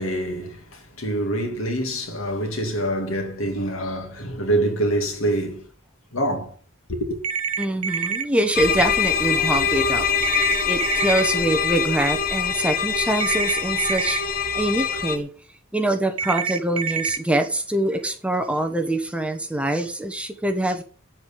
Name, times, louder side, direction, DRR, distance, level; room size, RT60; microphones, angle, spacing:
voice 1, 0.0-5.7 6.1-6.6 6.9-7.2, right 1 dB, 70° left, 2.7 m, -25 dB
sound 1, 7.2-8.2 10.2-11.2 13.2-14.2 16.2-17.2, right 6 dB, 85° right, 0.9 m, -26 dB
voice 2, 7.6-10.1 10.7-14.2 14.5-15.3 15.7-20.8, right 1 dB, 5° right, 1.2 m, -24 dB
sound 2, 8.5-15.2, left 6 dB, 45° left, 1.1 m, -24 dB
8.6 x 8.1 x 7.0 m
head